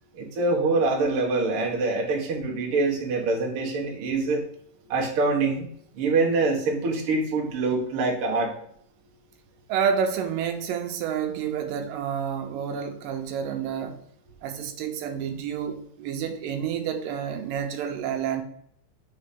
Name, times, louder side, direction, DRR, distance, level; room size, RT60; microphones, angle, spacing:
voice 1, 0.1-4.4 4.9-5.7 5.9-8.5, right 3 dB, 55° right, 1.8 m, -25 dB
voice 2, 9.7-14.0 14.4-18.4, right 7 dB, 85° right, 2.3 m, -29 dB
5.5 x 3.9 x 5.0 m
omnidirectional pair, 3.8 m